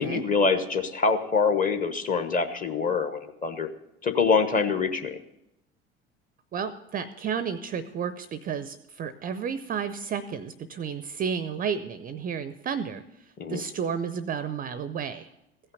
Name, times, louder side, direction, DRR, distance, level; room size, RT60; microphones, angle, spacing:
voice 1, 0.0-3.7 4.0-5.2 13.4-13.6, left 5 dB, 25° left, 7 dB, 1.0 m, -25 dB
voice 2, 6.5-13.0 13.5-15.3, right 7 dB, 25° right, 14 dB, 0.5 m, -32 dB
15.5 x 5.6 x 7.8 m, 0.87 s
figure-of-eight pair, 65°, 33 cm